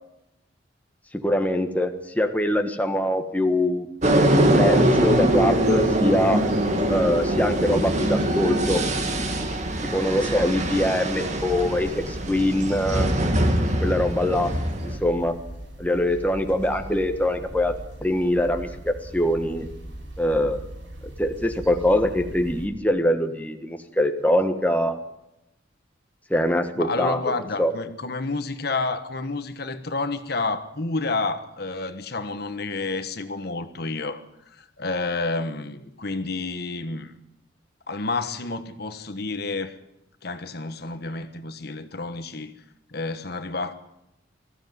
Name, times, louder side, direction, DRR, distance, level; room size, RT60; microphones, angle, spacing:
voice 1, 1.1-3.9 4.3-6.4 6.9-8.8 9.8-13.1 13.8-14.5 15.0-15.3 15.8-17.7 18.0-19.7 20.2-20.6 21.2-25.0 26.3-27.2 27.6-27.7, left 1 dB, 10° left, 1.4 m, -23 dB
sound 1, 4.0-15.0, right 1 dB, 35° right, 2.2 m, -23 dB
sound 2, 4.0-22.7, right 1 dB, 65° right, 7.5 m, -40 dB
voice 2, 26.8-34.2 34.5-37.1 37.9-39.8 40.2-42.5 42.9-43.7, left 3 dB, 55° left, 1.3 m, -30 dB
20.5 x 14.5 x 9.5 m
head